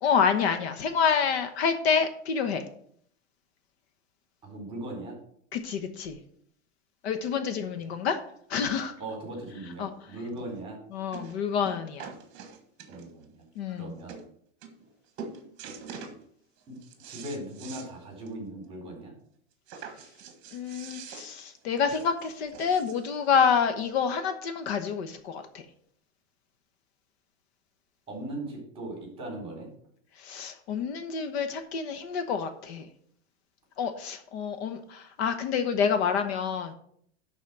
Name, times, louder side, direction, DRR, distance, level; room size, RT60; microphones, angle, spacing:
voice 1, 0.0-2.6 5.5-6.2 7.0-8.2 8.5-8.9 9.8-9.9 10.9-12.1 13.6-13.9 20.5-25.6 30.2-32.9 33.8-36.7, left 6 dB, 60° left, 8 dB, 1.1 m, -28 dB
voice 2, 4.4-5.2 9.0-10.8 12.9-13.5 13.8-14.2 16.7-16.8 17.0-19.1 28.1-29.7, right 1 dB, 15° right, 0 dB, 4.0 m, -39 dB
sound 1, 10.4-10.5 11.1-11.4 11.6-13.3 13.8-13.9 14.1-14.3 14.6-14.9 15.2-16.2 16.6-17.9 18.3-18.4 18.7-18.8 19.7-23.1 24.0-24.1, right 6 dB, 35° right, 1.5 m, -44 dB
11.5 x 4.2 x 6.2 m, 0.64 s
supercardioid pair, 165°, 36 cm